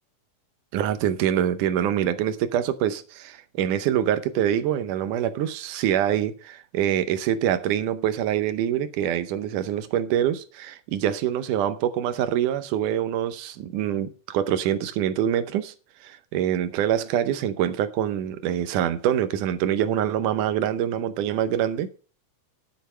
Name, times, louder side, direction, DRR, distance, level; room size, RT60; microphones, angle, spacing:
voice 1, 0.7-15.7 16.0-21.9, right 10 dB, 75° right, 2.2 m, -25 dB
11.5 x 6.9 x 5.5 m
omnidirectional pair, 3.8 m